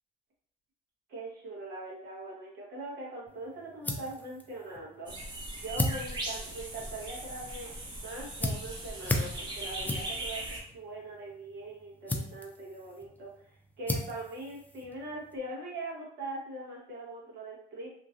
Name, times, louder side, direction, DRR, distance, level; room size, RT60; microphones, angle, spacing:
voice 1, 1.1-5.1 5.6-7.7 8.0-10.4 10.7-17.9, right 2 dB, 75° right, -4 dB, 1.2 m, -41 dB
sound 1, 3.3-15.4, left 2 dB, 10° left, 0.4 m, -38 dB
sound 2, 5.1-10.6, right 1 dB, 25° right, 0.7 m, -39 dB
2.9 x 2.4 x 2.5 m, 0.65 s
cardioid pair, 110°, 17 cm